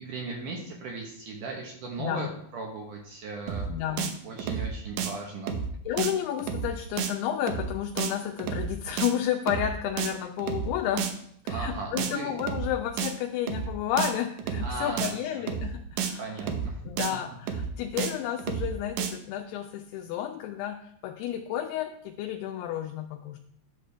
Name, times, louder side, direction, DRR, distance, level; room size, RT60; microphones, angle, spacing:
voice 1, 0.0-3.7 4.2-5.6 11.5-12.3 14.6-15.4 16.2-16.8, right 3 dB, 70° right, 1 dB, 2.0 m, -37 dB
voice 2, 2.0-2.3 3.7-4.2 5.9-11.2 11.5-16.5 16.8-23.4, left 10 dB, 80° left, 4 dB, 2.5 m, -31 dB
sound 1, 3.5-3.7 4.0-4.1 4.4-4.7 5.0-5.1 5.5-5.7 6.0-6.1 6.4-6.7 7.0-7.1 7.5-7.7 8.0-8.1 8.4-8.7 9.0-9.1 9.5-9.7 10.0-10.1 10.4-10.7 11.0-11.1 11.5-11.7 12.0-12.1 12.4-12.7 13.0-13.1 13.5-13.7 14.0-14.1 14.4-14.7 15.0-15.1 15.5-15.7 16.0-16.1 16.4-16.7 17.0-17.1 17.5-17.7 18.0-18.1 18.4-18.7 19.0-19.1, right 7 dB, 90° right, 1.8 m, -30 dB
10.5 x 6.6 x 3.3 m, 0.69 s
omnidirectional pair, 4.9 m